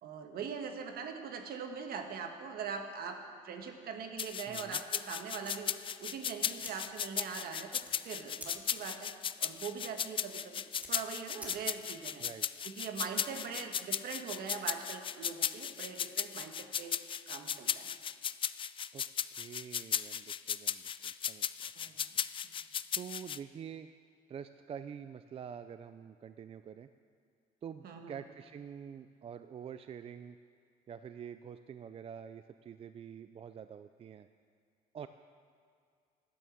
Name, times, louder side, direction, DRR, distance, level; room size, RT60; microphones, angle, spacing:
voice 1, 0.0-3.2 3.4-9.1 9.4-10.5 10.9-12.2 12.6-17.0 17.3-17.9 21.7-22.0 27.8-28.2, right 6 dB, 65° right, 5 dB, 1.5 m, -42 dB
sound 1, 4.2-23.4, left 8 dB, 30° left, 0.3 m, -36 dB
voice 2, 4.5-4.8 12.2-12.5 18.9-19.0 19.3-21.7 22.9-23.9 24.3-26.9 27.6-30.4 30.9-34.3 34.9-35.1, right 8 dB, 35° right, 11 dB, 0.4 m, -47 dB
sound 2, 5.4-12.0, equal, 10° right, 2.1 m, -53 dB
12.5 x 9.2 x 7.0 m, 2.3 s
cardioid pair, 110°, 17 cm